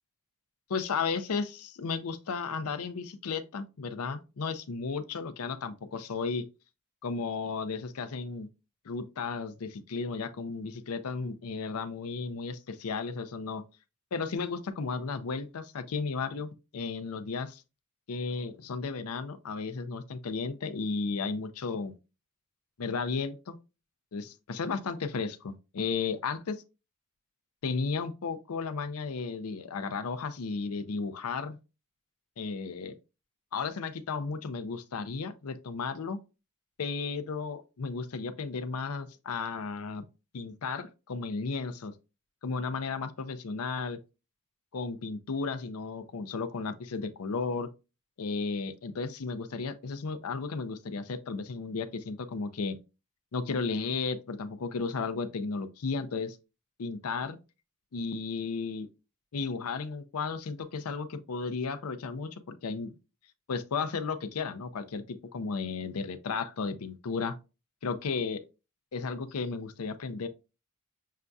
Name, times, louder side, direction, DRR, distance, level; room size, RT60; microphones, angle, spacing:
voice 1, 0.7-6.4 7.0-8.5 8.8-13.6 14.1-17.6 18.1-21.9 22.8-23.6 24.1-26.6 27.6-31.6 32.4-32.9 33.5-36.2 36.8-40.0 40.3-41.9 42.4-44.0 44.7-47.7 48.2-52.8 53.3-56.4 56.8-57.4 57.9-58.9 59.3-62.9 63.5-65.0 65.3-67.4 67.8-68.4 68.9-70.3, left 4 dB, 80° left, 0.5 m, -34 dB
6.4 x 2.3 x 2.5 m
head